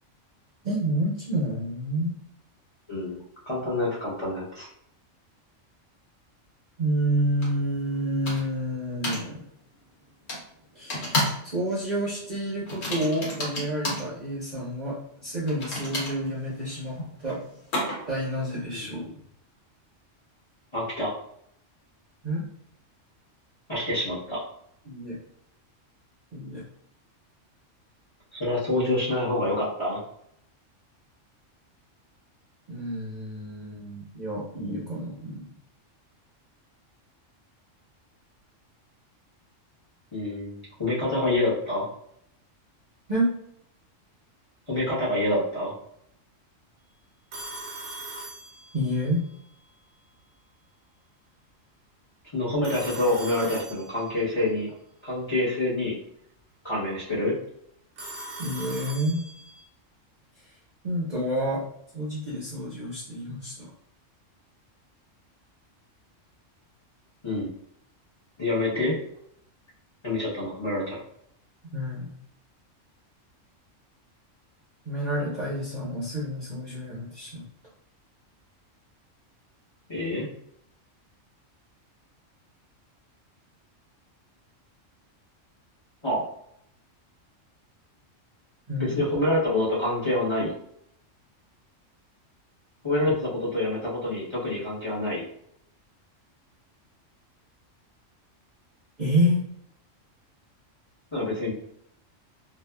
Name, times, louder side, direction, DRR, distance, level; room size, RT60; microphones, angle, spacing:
voice 1, 0.6-2.2 6.8-9.4 10.7-15.0 15.2-17.0 17.2-17.4 18.1-19.1 22.2-22.5 24.9-25.2 26.3-26.6 32.7-35.5 43.1-43.3 48.7-49.3 58.4-59.3 60.8-61.6 61.9-63.7 71.7-72.1 74.9-77.4 88.7-89.0 99.0-99.4, equal, 45° right, -7 dB, 0.6 m, -29 dB
voice 2, 2.9-3.2 3.4-4.7 20.7-21.1 23.7-24.4 28.3-30.0 40.1-41.9 44.7-45.7 52.3-54.7 55.0-55.9 56.6-57.3 67.2-67.5 68.4-68.9 70.0-71.0 79.9-80.3 86.0-86.2 88.8-90.5 92.8-95.3 101.1-101.5, left 1 dB, 25° left, -9 dB, 0.8 m, -27 dB
sound 1, 7.4-7.5 8.3-8.6 9.0-9.3 10.3-10.4 10.9-11.5 11.7-12.0 12.7-14.1 15.5-18.2, left 1 dB, 80° left, 1.3 m, -31 dB
Telephone, 47.3-49.1 52.6-54.3 58.0-59.7, right 2 dB, 70° right, 0.9 m, -40 dB
2.7 x 2.3 x 2.2 m, 0.71 s
omnidirectional pair, 1.3 m